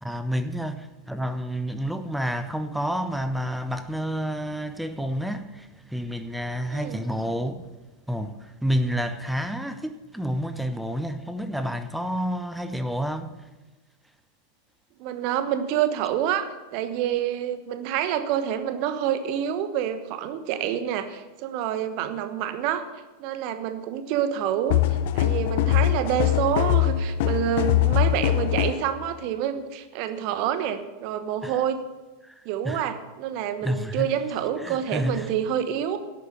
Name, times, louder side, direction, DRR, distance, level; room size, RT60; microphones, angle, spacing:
voice 1, 0.0-7.7 8.1-13.4 31.4-31.6 32.2-32.3 32.6-32.9 33.6-34.1 34.6-35.3, equal, ahead, 0.7 m, -29 dB
voice 2, 15.0-22.9 23.2-24.8 25.1-31.8 32.4-36.0, right 10 dB, 45° right, 1.1 m, -27 dB
sound 1, 24.7-28.9, left 13 dB, 50° left, 0.7 m, -22 dB
11.5 x 8.7 x 6.8 m
figure-of-eight pair, 90°, 0 cm